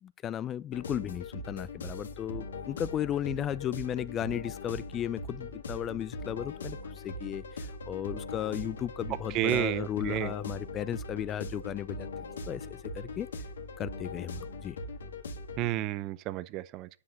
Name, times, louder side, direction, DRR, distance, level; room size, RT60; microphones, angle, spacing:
voice 1, 0.0-12.1 12.5-13.3 13.8-14.8, left 10 dB, 25° left, 0.4 m, -35 dB
sound 1, 0.7-15.7, left 2 dB, 75° left, 1.9 m, -40 dB
voice 2, 9.3-10.3 15.6-16.9, right 14 dB, 35° right, 0.6 m, -31 dB
9.7 x 5.7 x 6.3 m
hypercardioid pair, 125°, 0 cm